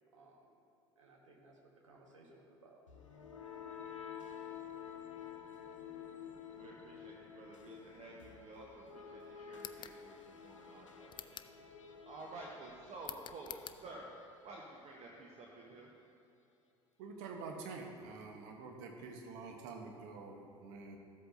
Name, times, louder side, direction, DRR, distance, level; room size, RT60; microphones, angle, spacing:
voice 1, 1.0-2.8, right 2 dB, 85° right, -1 dB, 1.4 m, -61 dB
sound 1, 2.9-14.8, left 8 dB, 90° left, 0.7 m, -51 dB
voice 2, 6.5-11.1 12.0-14.1 14.4-15.9, right 2 dB, 40° right, -1 dB, 1.1 m, -51 dB
sound 2, 9.5-10.0 11.1-11.6 13.0-13.8, left 9 dB, 30° left, 0.4 m, -48 dB
voice 3, 17.0-21.0, right 4 dB, 65° right, 2 dB, 1.0 m, -47 dB
14.0 x 8.0 x 2.6 m, 2.7 s
figure-of-eight pair, 65°, 16 cm